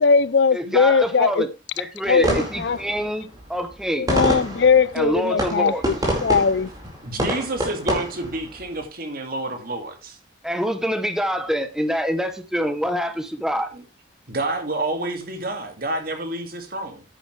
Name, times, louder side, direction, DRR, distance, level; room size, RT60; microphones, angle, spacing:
voice 1, 0.0-1.4 2.1-2.8 4.1-5.7 6.2-6.7, left 5 dB, 65° left, 0.5 m, -19 dB
voice 2, 0.5-1.5 1.8-4.1 4.9-5.9 10.4-13.7, equal, 5° right, 0.9 m, -25 dB
sound 1, 2.1-8.8, equal, 20° right, 4.6 m, -28 dB
voice 3, 7.0-10.2 13.7-13.8 14.3-17.0, right 2 dB, 50° right, 2.4 m, -29 dB
10.0 x 10.0 x 3.3 m
head